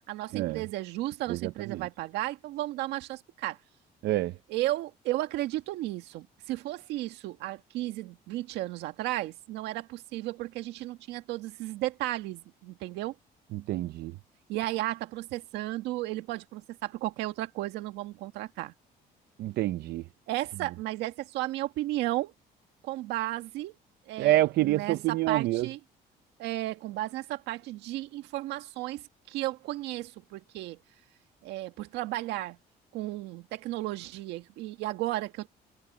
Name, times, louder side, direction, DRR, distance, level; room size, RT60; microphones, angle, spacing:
voice 1, 0.1-3.6 4.5-13.1 14.5-18.7 20.3-22.3 22.8-23.8 24.1-25.8 26.4-30.8 31.4-32.6 32.9-35.5, right 16 dB, 90° right, 1.8 m, -34 dB
voice 2, 1.3-1.9 4.0-4.3 13.5-14.1 19.4-20.0 24.2-25.7, right 16 dB, 75° right, 0.7 m, -27 dB
cardioid pair, 110°, 17 cm